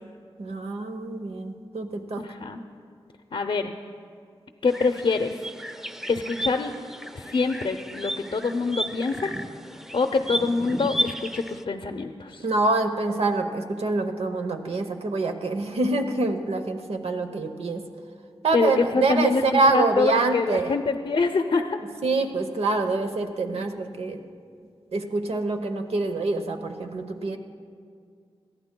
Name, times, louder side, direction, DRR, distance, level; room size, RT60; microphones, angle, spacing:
voice 1, 0.4-2.3 12.4-17.9 18.4-20.7 22.0-24.2 24.9-27.4, right 3 dB, 85° right, 5 dB, 0.9 m, -25 dB
voice 2, 2.2-2.6 3.3-3.7 4.6-5.3 6.1-6.7 7.1-9.3 9.9-12.4 18.5-21.8, left 4 dB, 65° left, 5 dB, 0.6 m, -25 dB
sound 1, 4.7-11.6, right 1 dB, 5° right, 0.4 m, -33 dB
22.0 x 15.0 x 2.2 m, 2.2 s
wide cardioid pair, 65°, 10 cm